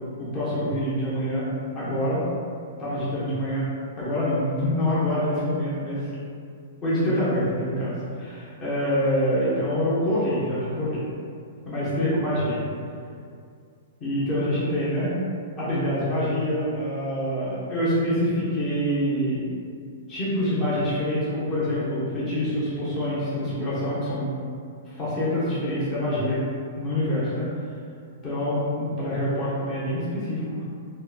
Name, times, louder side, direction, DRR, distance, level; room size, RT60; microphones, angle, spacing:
voice 1, 0.2-1.4 1.7-2.2 2.8-3.6 4.0-6.1 6.8-11.0 11.7-12.6 14.0-15.1 15.6-19.4 20.1-24.3 24.9-26.4 26.8-27.5 28.2-30.6, equal, 20° left, -10 dB, 0.8 m, -26 dB
2.9 x 2.2 x 2.3 m, 2.3 s
hypercardioid pair, 145°, 0 cm